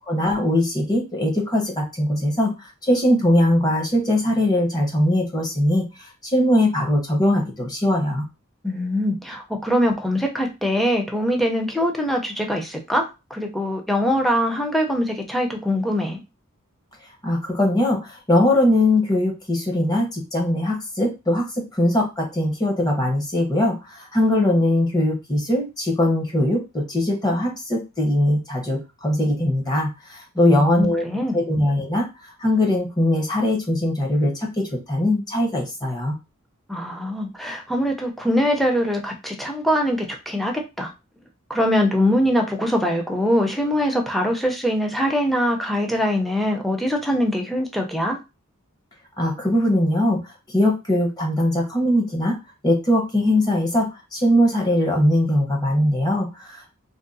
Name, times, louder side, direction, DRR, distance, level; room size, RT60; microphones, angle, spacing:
voice 1, 0.0-2.5 2.8-5.8 6.2-8.2 17.2-31.0 31.3-32.1 32.4-36.1 49.2-50.2 50.5-52.4 52.6-56.8, left 1 dB, 20° left, 1 dB, 0.9 m, -21 dB
voice 2, 8.6-16.2 30.3-31.4 36.7-40.9 41.5-48.2, equal, ahead, 2 dB, 0.5 m, -23 dB
3.6 x 2.2 x 2.6 m, 0.26 s
head